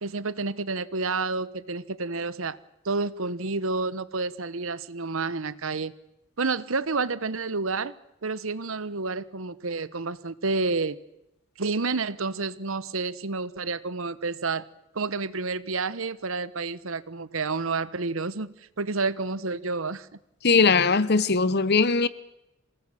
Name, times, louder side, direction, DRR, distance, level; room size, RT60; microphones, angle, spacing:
voice 1, 0.0-2.6 2.8-5.9 6.4-7.9 8.2-11.0 11.6-14.6 14.9-20.1, right 3 dB, 70° right, 16 dB, 1.1 m, -29 dB
voice 2, 20.4-22.1, left 4 dB, 50° left, 17 dB, 1.0 m, -20 dB
27.0 x 18.5 x 7.7 m, 0.87 s
head